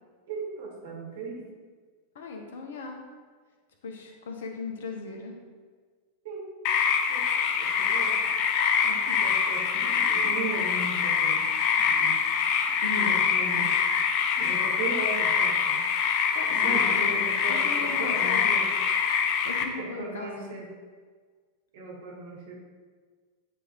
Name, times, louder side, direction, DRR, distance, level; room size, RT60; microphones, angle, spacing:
voice 1, 0.3-1.5 6.2-6.5 7.1-7.2 7.6-8.2 9.2-11.5 11.8-12.2 13.0-13.8 14.3-15.8 16.1-16.2 16.5-18.7 19.8-20.7 21.7-22.5, right 3 dB, 55° right, -3 dB, 1.8 m, -37 dB
voice 2, 2.1-3.0 3.8-5.4 8.8-9.3 12.8-13.2 13.5-13.7 16.3-18.6 19.4-20.5, left 4 dB, 60° left, 3 dB, 1.0 m, -37 dB
sound 1, 6.6-19.6, left 6 dB, 45° left, 0.6 m, -25 dB
9.7 x 3.5 x 3.2 m, 1.5 s
figure-of-eight pair, 90°, 0 cm